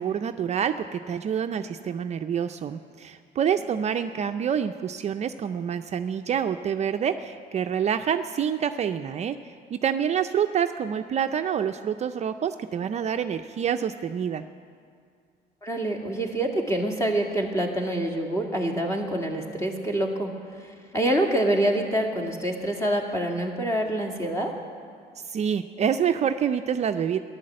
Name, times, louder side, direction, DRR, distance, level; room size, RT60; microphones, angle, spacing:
voice 1, 0.0-14.4 25.3-27.2, right 8 dB, 40° right, 8 dB, 0.5 m, -27 dB
voice 2, 15.6-20.3 20.6-24.5, right 1 dB, 15° left, 1 dB, 2.1 m, -26 dB
14.5 x 11.0 x 7.6 m, 2.2 s
cardioid pair, 110°, 17 cm